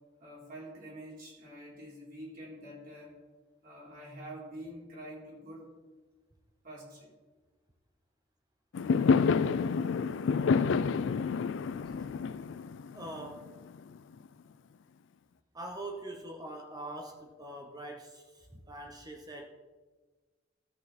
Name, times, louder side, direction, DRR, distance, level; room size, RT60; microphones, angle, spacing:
voice 1, 0.2-3.1 3.6-5.7 6.6-7.1, right 1 dB, 50° right, -5 dB, 3.4 m, -46 dB
Fireworks, 8.7-14.0, left 5 dB, 80° left, 0.4 m, -28 dB
voice 2, 11.7-12.1 12.9-13.5 15.5-19.5, right 1 dB, 20° right, 2 dB, 0.8 m, -43 dB
13.0 x 6.2 x 4.2 m, 1.3 s
head